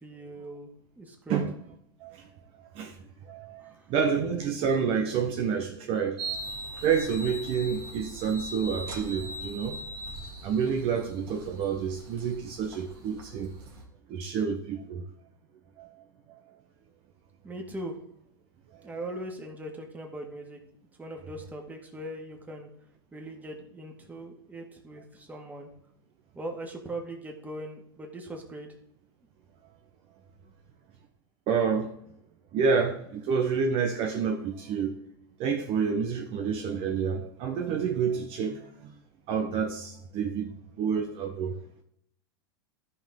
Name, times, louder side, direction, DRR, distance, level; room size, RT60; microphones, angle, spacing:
voice 1, 0.0-0.7 1.0-1.4 3.6-3.8 17.4-18.0 18.8-20.6 21.0-22.7 23.1-25.7 26.4-28.7, right 1 dB, 10° right, 2.0 m, -40 dB
voice 2, 2.0-2.3 2.6-6.5 6.8-9.8 10.4-13.6 14.1-15.1 15.8-16.4 18.7-18.9 31.5-32.0 32.5-35.0 35.4-38.9 39.3-41.6, right 6 dB, 45° right, 1.0 m, -29 dB
sound 1, 6.2-13.8, right 2 dB, 70° right, 2.8 m, -40 dB
14.0 x 5.5 x 3.8 m
hypercardioid pair, 105°, 14 cm